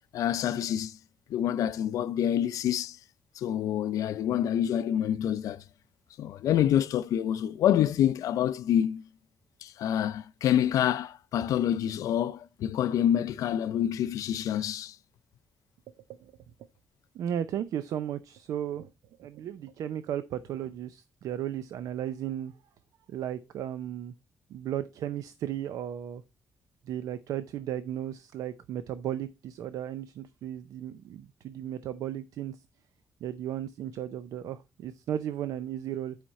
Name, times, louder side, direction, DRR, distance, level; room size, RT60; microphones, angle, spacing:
voice 1, 0.1-1.0 1.3-3.0 3.4-5.6 6.2-9.0 9.6-15.0, left 10 dB, 80° left, 0.5 m, -27 dB
voice 2, 17.1-18.9 19.2-22.5 23.1-24.1 24.5-26.2 26.8-32.6 33.2-36.2, right 10 dB, 80° right, 0.5 m, -35 dB
10.5 x 5.0 x 4.2 m
wide cardioid pair, 180°, 6 cm